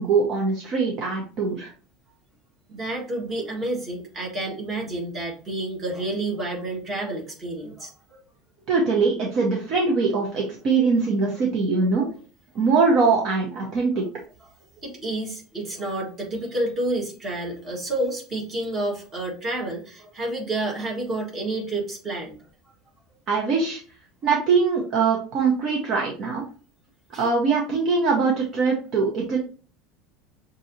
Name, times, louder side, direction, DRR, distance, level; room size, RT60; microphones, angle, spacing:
voice 1, 0.0-1.7 8.7-12.1 12.5-14.1 23.3-23.8 24.2-26.4 27.2-29.4, right 4 dB, 35° right, -1 dB, 0.8 m, -22 dB
voice 2, 2.7-7.9 14.8-22.3 27.1-27.2, right 2 dB, 20° right, -2 dB, 1.5 m, -29 dB
6.1 x 2.7 x 2.7 m, 0.39 s
cardioid pair, 170°, 0 cm